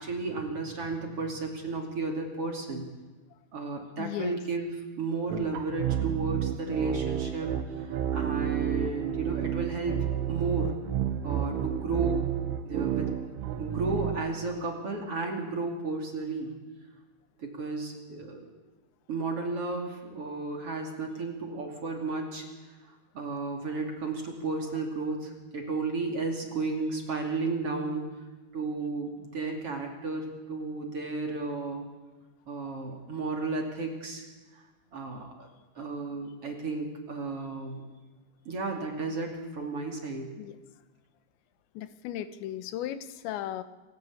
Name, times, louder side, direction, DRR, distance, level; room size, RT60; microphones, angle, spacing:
voice 1, 0.0-2.9 3.5-10.7 11.2-12.3 12.6-13.1 13.6-16.5 17.4-18.5 19.1-22.4 22.9-28.1 28.5-31.8 32.5-34.3 34.5-34.6 34.9-35.5 35.7-37.8 38.4-40.3, right 3 dB, 35° right, 2 dB, 2.9 m, -33 dB
voice 2, 4.0-4.4 40.4-40.6 41.7-43.6, left 11 dB, 75° left, 12 dB, 3.2 m, -36 dB
sound 1, 5.3-14.3, right 10 dB, 80° right, 3.8 m, -31 dB
28.0 x 16.5 x 8.6 m, 1.2 s
omnidirectional pair, 5.6 m